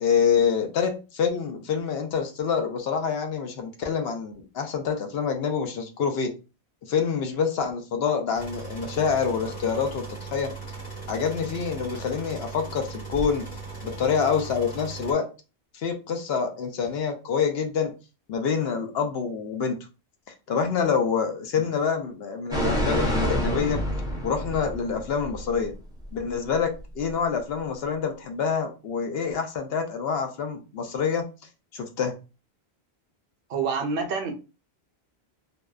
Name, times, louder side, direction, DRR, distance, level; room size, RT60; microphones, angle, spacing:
voice 1, 0.0-6.3 6.8-10.5 11.1-13.5 13.8-15.3 15.7-17.9 18.3-19.8 20.3-23.8 24.2-25.7 26.1-31.3 31.7-32.2, left 6 dB, 70° left, 5 dB, 0.8 m, -26 dB
sound 1, 8.3-15.1, right 3 dB, 50° left, 1.3 m, -38 dB
sound 2, 22.5-25.4 25.7-25.8, equal, 5° right, 0.4 m, -27 dB
voice 2, 33.5-34.3, right 5 dB, 65° right, 5 dB, 0.7 m, -27 dB
2.7 x 2.1 x 2.3 m, 0.30 s
omnidirectional pair, 1.1 m